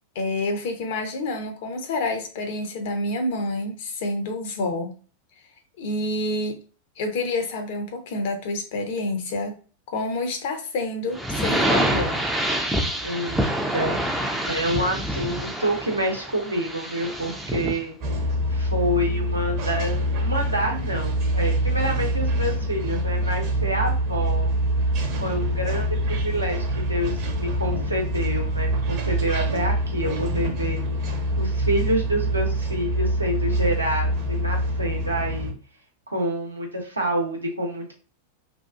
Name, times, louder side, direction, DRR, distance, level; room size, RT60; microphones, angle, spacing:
voice 1, 0.1-4.9 5.8-6.6 7.0-9.6 9.9-12.2, left 2 dB, 50° left, 4 dB, 0.7 m, -28 dB
sound 1, 11.1-17.8, right 1 dB, 5° right, 0.4 m, -26 dB
voice 2, 13.0-17.9 18.5-24.5 25.2-30.8 31.4-35.5 36.1-37.9, equal, 85° right, 0 dB, 0.8 m, -28 dB
sound 2, 18.0-35.5, right 1 dB, 40° right, 0.8 m, -25 dB
2.7 x 2.3 x 2.3 m, 0.38 s
figure-of-eight pair, 90°, 0 cm